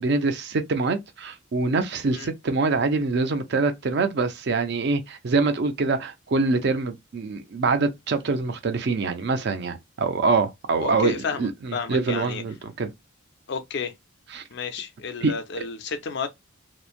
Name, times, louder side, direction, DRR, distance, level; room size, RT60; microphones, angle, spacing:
voice 1, 0.0-12.9 14.3-14.4 15.2-15.3, right 3 dB, 50° right, 0.4 m, -25 dB
voice 2, 10.8-12.4 13.5-13.9 14.5-16.3, left 5 dB, 55° left, 0.4 m, -31 dB
3.0 x 2.1 x 2.4 m
head